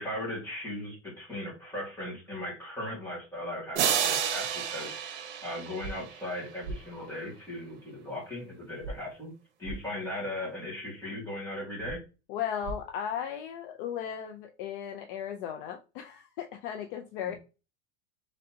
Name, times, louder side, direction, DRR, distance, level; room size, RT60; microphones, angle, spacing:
voice 1, 0.0-5.0 5.4-9.3 9.6-12.0 17.2-17.4, left 1 dB, 5° left, -5 dB, 1.8 m, -37 dB
sound 1, 3.8-6.4, right 8 dB, 75° right, 0.9 m, -30 dB
sound 2, 5.8-5.9 6.6-6.8 8.8-8.9 9.6-9.8 11.8-12.0 12.6-12.8, right 3 dB, 35° right, 0.5 m, -37 dB
voice 2, 12.3-17.3, left 9 dB, 50° left, 5 dB, 0.5 m, -36 dB
3.8 x 3.3 x 2.7 m, 0.30 s
supercardioid pair, 170°, 34 cm